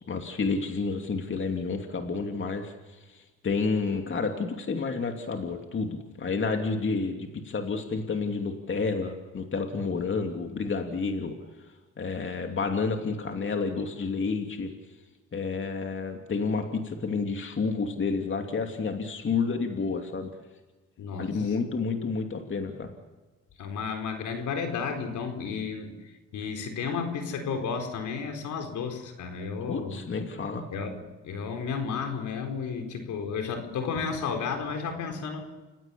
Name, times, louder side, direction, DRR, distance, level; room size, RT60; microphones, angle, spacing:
voice 1, 0.1-11.3 12.0-14.7 15.3-20.3 21.2-22.9 29.7-30.6, left 4 dB, 40° left, 4 dB, 2.8 m, -30 dB
voice 2, 21.0-21.5 23.6-30.0 30.7-35.4, left 5 dB, 75° left, 5 dB, 4.3 m, -33 dB
29.5 x 16.5 x 7.1 m, 1.2 s
cardioid pair, 90°, 30 cm